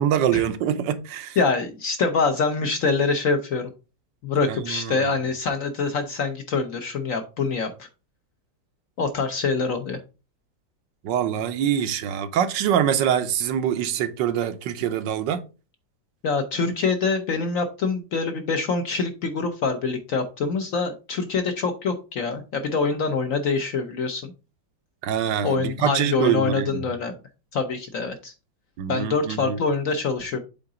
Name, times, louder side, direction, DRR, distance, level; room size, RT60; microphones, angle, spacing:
voice 1, 0.0-1.4 4.5-5.1 11.0-15.4 25.0-26.8 28.8-29.6, right 9 dB, 75° right, 1.3 m, -24 dB
voice 2, 1.4-3.7 4.2-7.9 9.0-10.0 16.2-24.3 25.4-27.2 27.5-28.3 28.9-30.4, left 4 dB, 60° left, 0.9 m, -25 dB
7.8 x 3.9 x 3.7 m
omnidirectional pair, 2.0 m